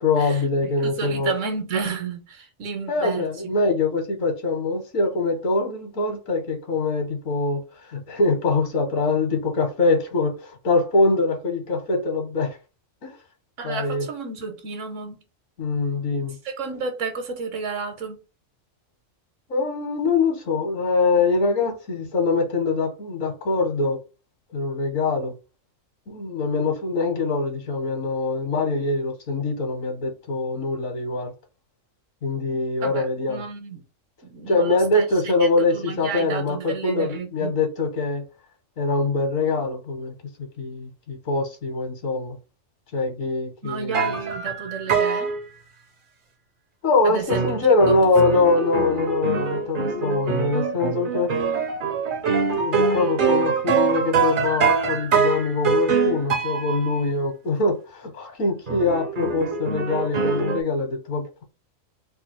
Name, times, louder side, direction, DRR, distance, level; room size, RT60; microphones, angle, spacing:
voice 1, 0.0-1.3 2.9-7.6 7.9-12.6 13.0-13.1 13.6-14.1 15.6-16.4 19.5-24.0 24.5-25.4 26.1-31.3 32.2-33.4 34.5-38.2 38.8-40.1 40.6-42.4 42.9-44.1 46.8-51.3 52.6-61.4, left 3 dB, 80° left, 1.4 m, -23 dB
voice 2, 0.8-3.3 13.6-15.2 16.4-18.2 32.8-33.8 34.2-37.5 43.6-45.3 47.0-48.0 48.3-48.4, right 5 dB, 70° right, 1.3 m, -32 dB
sound 1, 43.9-45.4 47.3-57.0 58.7-60.6, right 5 dB, 50° right, 0.8 m, -24 dB
3.3 x 2.4 x 4.4 m
omnidirectional pair, 1.4 m